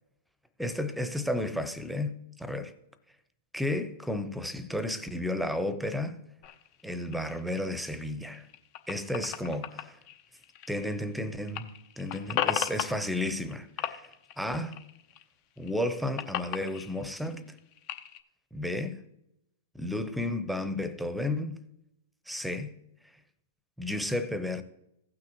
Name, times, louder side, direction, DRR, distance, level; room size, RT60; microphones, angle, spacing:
voice 1, 0.6-2.7 3.5-6.2 6.8-8.5 8.9-10.0 10.7-14.8 15.6-17.6 18.5-19.0 19.8-21.6 22.3-22.7 23.8-24.6, left 1 dB, ahead, 0.8 m, -33 dB
sound 1, 6.4-11.2 11.4-13.5 13.8-15.2 15.6-18.2, left 11 dB, 45° left, 0.8 m, -36 dB
16.0 x 6.1 x 3.0 m
hypercardioid pair, 115°, 0 cm